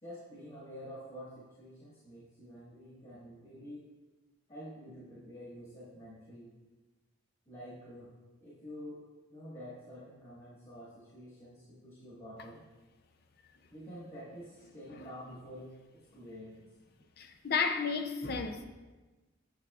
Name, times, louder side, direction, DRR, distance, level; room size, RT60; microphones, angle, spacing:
voice 1, 0.0-3.8 4.5-6.5 7.5-8.1 8.4-9.0 9.3-12.6 13.7-16.5, equal, 30° left, 1.5 m, -48 dB
voice 2, 17.2-18.7, left 5 dB, 50° left, 0.4 m, -33 dB
8.3 x 6.9 x 2.3 m
head